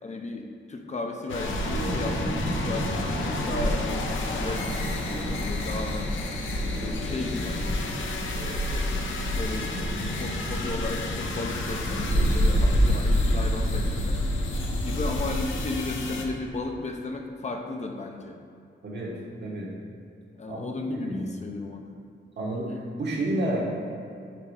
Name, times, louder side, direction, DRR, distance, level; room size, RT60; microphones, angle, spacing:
voice 1, 0.0-7.9 8.3-9.0 9.3-9.7 10.1-14.2 14.8-18.4 20.4-22.0 22.5-22.8, left 3 dB, 35° left, 3 dB, 0.5 m, -35 dB
sound 1, 1.3-16.2, left 3 dB, 80° left, 0.7 m, -33 dB
Wind, 1.4-15.6, equal, 85° right, 1.2 m, -28 dB
voice 2, 18.8-19.1 19.4-19.7 20.5-21.3 22.4-23.6, right 1 dB, 60° right, -4 dB, 1.4 m, -30 dB
5.9 x 3.9 x 4.8 m, 2.5 s
wide cardioid pair, 110°, 20 cm